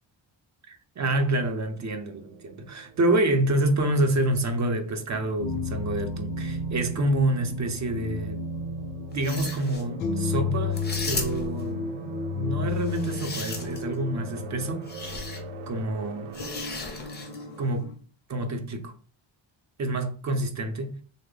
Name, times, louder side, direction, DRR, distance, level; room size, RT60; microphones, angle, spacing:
voice 1, 0.7-8.4 9.1-12.0 12.3-15.1 15.7-16.3 17.6-17.9 18.3-18.9 19.8-21.0, right 1 dB, 40° right, 0.5 m, -27 dB
sound 1, 1.3-17.8, right 8 dB, 85° right, 0.6 m, -46 dB
sound 2, 5.4-17.9, left 3 dB, 75° left, 0.7 m, -33 dB
sound 3, 9.1-9.8 10.7-11.6 12.8-13.9 14.9-15.4 16.3-17.4, left 3 dB, 25° left, 0.5 m, -36 dB
3.2 x 2.0 x 3.7 m
wide cardioid pair, 165°, 46 cm